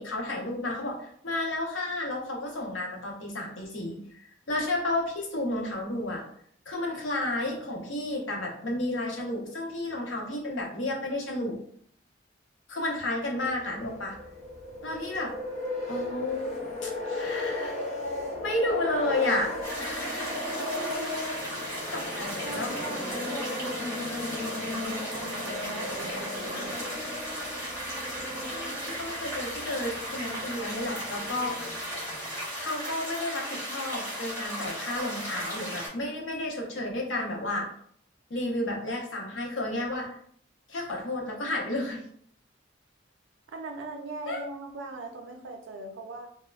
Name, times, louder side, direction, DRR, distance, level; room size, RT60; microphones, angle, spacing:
voice 1, 0.0-4.0 4.5-6.2 6.7-11.6 12.7-14.2 14.8-15.3 15.9-17.8 18.4-19.5 19.8-20.5 21.3-21.5 21.9-22.7 28.4-31.6 32.5-37.7 38.3-40.1 40.7-42.0 44.3-44.4, left 1 dB, 75° left, -1 dB, 0.7 m, -32 dB
sound 1, 13.4-32.5, left 2 dB, 40° left, 0.5 m, -36 dB
sound 2, 19.6-35.9, equal, 15° left, 1.1 m, -36 dB
voice 2, 22.4-27.3 43.5-46.3, right 2 dB, 80° right, 4 dB, 0.4 m, -41 dB
3.1 x 2.1 x 2.2 m, 0.63 s
head